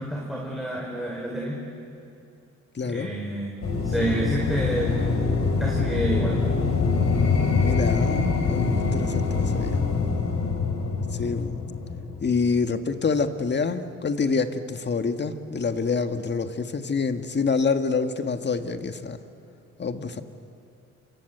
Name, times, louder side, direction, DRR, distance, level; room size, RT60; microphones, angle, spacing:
voice 1, 0.0-1.6 2.8-3.6 3.8-5.0 5.6-6.4, right 1 dB, ahead, -2 dB, 4.6 m, -28 dB
voice 2, 2.7-3.1 7.6-9.8 11.1-11.6 12.2-19.2 19.8-20.2, left 4 dB, 35° left, 8 dB, 1.7 m, -26 dB
sound 1, 3.6-12.7, left 4 dB, 55° left, 3.8 m, -24 dB
28.0 x 25.0 x 8.0 m, 2.6 s
cardioid pair, 90°, 30 cm